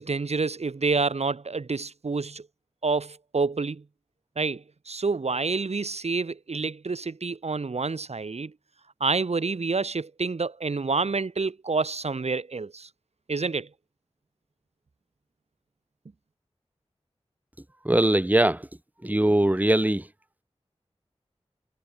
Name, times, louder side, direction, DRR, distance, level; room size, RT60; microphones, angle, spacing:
voice 1, 0.0-2.5 2.8-3.8 4.4-8.5 9.0-12.9 13.3-13.7, right 4 dB, 75° right, 1.7 m, -28 dB
voice 2, 17.8-18.6 19.0-20.0, right 1 dB, 15° right, 1.4 m, -21 dB
wide cardioid pair, 55°, 11 cm